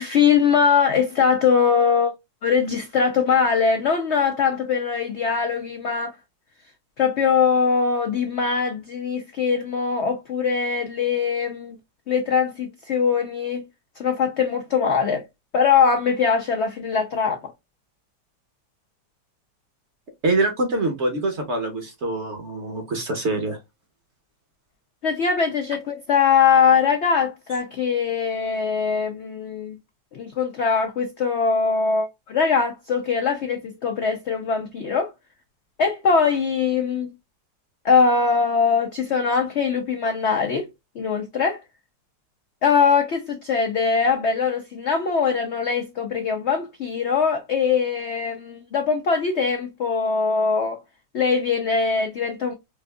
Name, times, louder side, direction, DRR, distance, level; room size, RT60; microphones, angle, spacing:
voice 1, 0.0-2.1 2.4-6.1 7.0-11.8 12.1-13.6 14.0-15.2 15.5-17.5 25.0-29.8 30.1-35.1 35.8-37.1 37.8-40.7 41.0-41.6 42.6-50.8 51.1-52.5, left 6 dB, 85° left, 0.6 m, -21 dB
voice 2, 20.2-23.6, right 2 dB, 50° right, 0.9 m, -24 dB
4.4 x 2.5 x 2.2 m
omnidirectional pair, 1.9 m